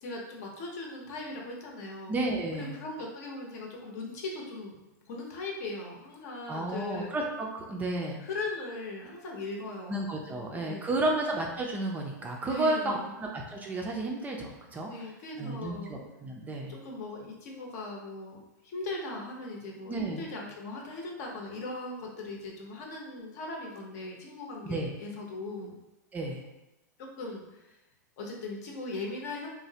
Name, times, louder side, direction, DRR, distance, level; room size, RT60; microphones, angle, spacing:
voice 1, 0.0-2.2 2.6-4.8 5.0-7.1 8.2-10.0 10.3-11.2 12.5-13.1 14.9-15.9 16.7-25.7 27.0-27.8 28.2-29.5, left 2 dB, 60° left, 0 dB, 0.8 m, -39 dB
voice 2, 2.1-2.8 6.5-8.2 9.9-15.1 15.4-16.8 19.9-20.3 24.6-24.9 26.1-26.4, right 2 dB, 15° right, 0 dB, 0.4 m, -32 dB
3.0 x 2.0 x 2.7 m, 0.97 s
hypercardioid pair, 120°, 10 cm